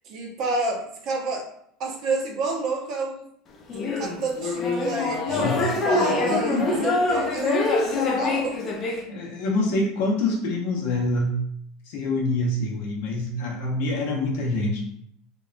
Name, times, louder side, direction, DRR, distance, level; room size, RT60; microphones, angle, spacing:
voice 1, 0.0-1.5 1.8-3.2 3.7-9.0, right 2 dB, 40° right, 0 dB, 0.5 m, -30 dB
sound 1, 3.7-9.0, left 3 dB, 25° left, 0.4 m, -24 dB
voice 2, 9.1-11.4 11.9-14.8, left 2 dB, 65° left, -1 dB, 0.7 m, -25 dB
2.8 x 2.2 x 2.4 m, 0.70 s
cardioid pair, 170°, 0 cm